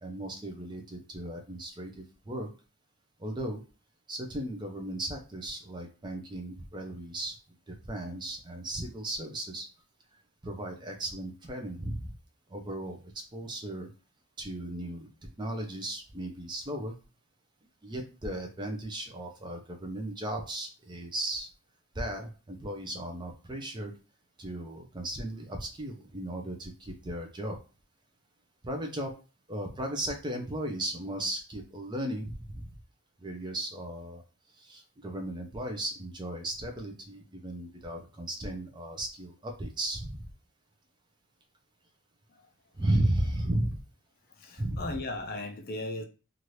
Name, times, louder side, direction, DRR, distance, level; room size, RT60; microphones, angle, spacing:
voice 1, 0.0-2.5 3.2-3.6 4.1-7.4 7.7-9.7 10.4-12.1 12.5-13.9 14.4-15.1 15.4-16.9 17.8-21.5 21.9-23.9 24.4-27.6 28.6-29.2 29.5-32.7 33.2-34.2 34.5-40.2 42.8-43.8 44.6-44.9, right 1 dB, 20° right, 3 dB, 0.5 m, -35 dB
voice 2, 44.3-46.0, left 2 dB, 45° left, 4 dB, 0.4 m, -37 dB
2.8 x 2.5 x 3.1 m, 0.34 s
head